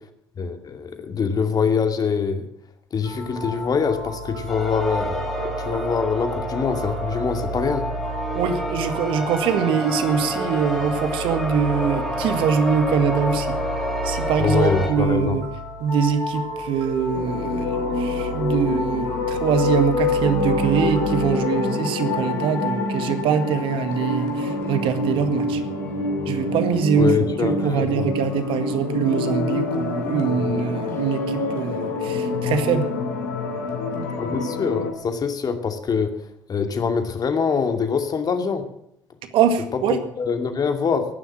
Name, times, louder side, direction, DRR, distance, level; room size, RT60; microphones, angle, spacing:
voice 1, 0.4-2.4 2.9-5.3 5.6-7.8 14.4-15.4 27.0-28.1 34.2-36.1 36.5-38.6 39.7-41.1, left 6 dB, 40° left, 7 dB, 2.5 m, -24 dB
sound 1, 3.0-21.4, right 1 dB, 75° right, 6.9 m, -32 dB
sound 2, 4.5-14.9, equal, ahead, 5.1 m, -29 dB
voice 2, 8.3-13.6 14.0-15.4 15.8-25.6 26.3-27.1 27.4-32.9 39.3-40.0, right 7 dB, 60° right, 9 dB, 1.9 m, -23 dB
sound 3, 17.1-34.9, left 3 dB, 80° left, 2.7 m, -26 dB
15.0 x 11.5 x 7.6 m, 0.75 s
hypercardioid pair, 55°, 10 cm